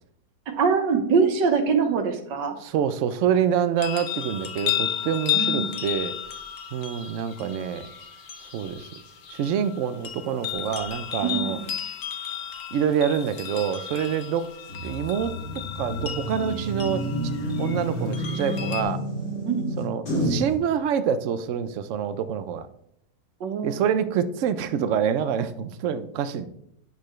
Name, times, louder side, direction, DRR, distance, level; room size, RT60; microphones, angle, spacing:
voice 1, 0.6-2.6 5.3-5.7 11.2-11.7 19.5-19.7 23.4-23.8, right 5 dB, 85° right, 5 dB, 1.7 m, -23 dB
voice 2, 2.6-6.1 6.7-7.9 8.5-8.9 9.3-11.6 12.7-14.5 14.8-15.3 15.8-17.0 17.6-19.0 19.8-22.7 23.6-26.5, right 8 dB, 70° right, 12 dB, 0.7 m, -26 dB
sound 1, 3.8-18.8, left 10 dB, 55° left, 1.1 m, -33 dB
sound 2, 14.7-20.5, equal, 85° left, 3.2 m, -29 dB
9.7 x 6.6 x 3.1 m, 0.74 s
omnidirectional pair, 1.9 m